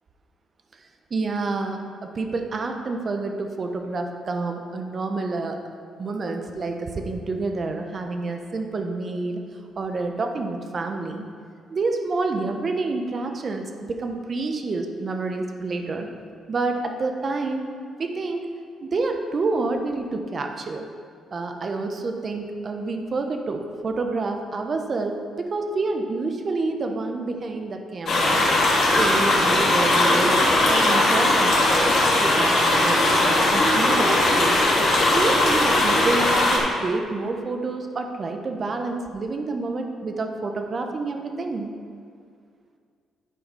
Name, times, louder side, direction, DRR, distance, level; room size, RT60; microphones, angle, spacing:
voice 1, 1.1-5.6 6.0-9.4 9.8-11.2 11.7-16.1 16.5-17.7 18.0-18.5 18.8-20.9 21.3-34.6 35.1-41.7, right 3 dB, 40° right, 4 dB, 1.0 m, -28 dB
sound 1, 28.1-36.6, left 1 dB, 65° left, 2.5 m, -19 dB
11.0 x 4.7 x 5.5 m, 2.2 s
cardioid pair, 90°, 0 cm